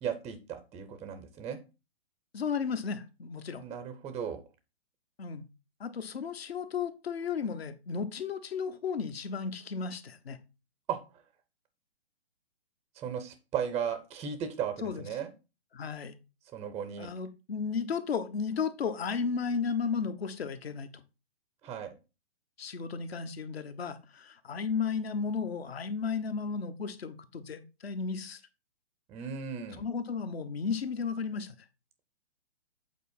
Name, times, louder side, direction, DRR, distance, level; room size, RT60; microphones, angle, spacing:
voice 1, 0.0-1.6 3.6-4.4 10.9-11.0 13.0-15.3 16.5-17.1 21.6-21.9 29.1-29.8, right 8 dB, 10° right, 10 dB, 0.4 m, -36 dB
voice 2, 2.3-3.7 5.2-5.4 5.8-10.4 14.8-15.0 15.7-16.1 17.0-21.0 22.6-28.4 29.8-31.5, left 5 dB, 75° left, 10 dB, 1.1 m, -34 dB
8.3 x 4.2 x 4.2 m, 0.30 s
hypercardioid pair, 130°, 31 cm